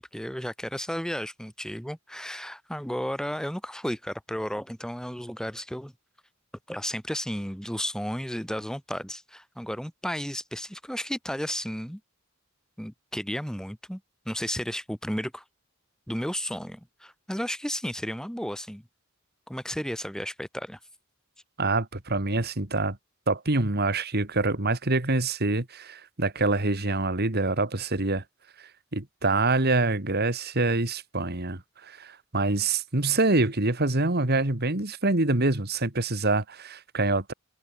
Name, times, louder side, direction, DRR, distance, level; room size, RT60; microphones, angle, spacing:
voice 1, 0.0-5.9 6.7-12.0 12.8-14.0 14.3-15.4 16.1-18.8 19.5-20.8, equal, 5° left, 2.4 m, -33 dB
voice 2, 21.6-23.0 23.3-28.2 28.9-37.3, right 2 dB, 50° right, 2.5 m, -25 dB
head